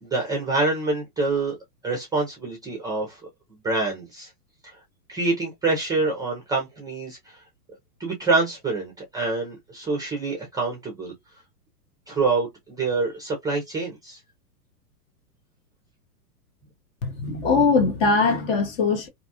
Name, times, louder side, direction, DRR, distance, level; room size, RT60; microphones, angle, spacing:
voice 1, 0.0-1.6 1.8-3.2 3.6-4.3 4.6-4.8 5.1-7.4 8.0-11.1 12.1-14.2, right 3 dB, 10° right, 0.5 m, -26 dB
voice 2, 17.0-19.1, left 4 dB, 35° left, 0.8 m, -21 dB
2.7 x 2.2 x 2.7 m
hypercardioid pair, 130°, 48 cm